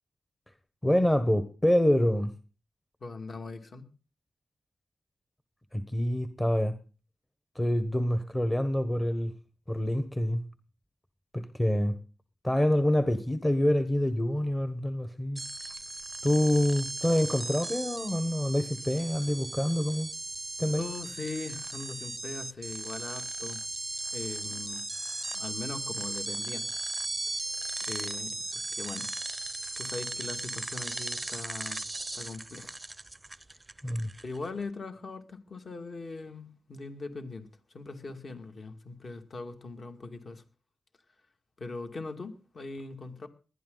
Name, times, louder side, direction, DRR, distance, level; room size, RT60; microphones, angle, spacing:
voice 1, 0.8-2.3 5.7-6.8 7.5-9.3 9.7-10.4 11.3-12.0 12.4-15.4 16.2-20.1 20.6-20.8 33.8-34.1, left 1 dB, 15° left, 1.1 m, -26 dB
voice 2, 3.0-3.9 20.7-23.6 24.1-24.8 25.3-26.7 27.9-29.1 29.8-31.8 32.1-32.7 34.2-37.5 37.7-40.4 41.6-43.3, left 3 dB, 45° left, 2.3 m, -40 dB
sound 1, 15.4-34.5, right 2 dB, 20° right, 0.6 m, -37 dB
20.0 x 11.5 x 4.0 m
cardioid pair, 95°, 0 cm